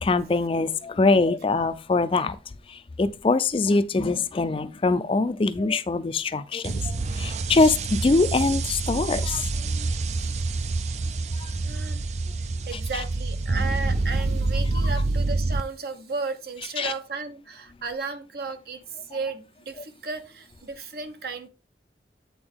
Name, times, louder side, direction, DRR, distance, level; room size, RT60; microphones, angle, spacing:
voice 1, 0.0-2.4 2.7-9.9 11.4-11.5 12.7-13.0 16.8-16.9, left 3 dB, 30° left, 0.4 m, -23 dB
sound 1, 6.6-15.6, right 3 dB, 40° right, 0.4 m, -27 dB
voice 2, 11.6-12.0 12.7-18.8 19.1-21.5, right 4 dB, 60° right, 0.9 m, -34 dB
8.7 x 4.4 x 3.5 m
head